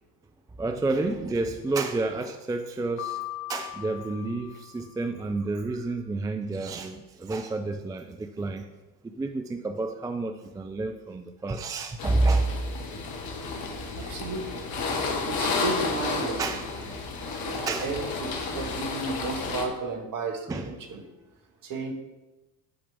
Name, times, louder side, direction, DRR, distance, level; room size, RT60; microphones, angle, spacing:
voice 1, 0.6-3.2 3.5-8.7 9.0-12.6 14.0-14.1 14.9-15.1 16.4-17.9 18.4-18.6 20.4-21.0, right 3 dB, 10° right, 7 dB, 0.4 m, -30 dB
Piano, 3.0-5.1, left 15 dB, 75° left, 1.0 m, -39 dB
sound 1, 12.0-19.7, left 3 dB, 50° left, 1.5 m, -32 dB
voice 2, 14.0-14.6 15.3-16.4 17.4-21.0 21.7-21.9, right 3 dB, 45° right, 3 dB, 1.7 m, -33 dB
11.0 x 5.0 x 3.5 m, 1.1 s
figure-of-eight pair, 60°, 45 cm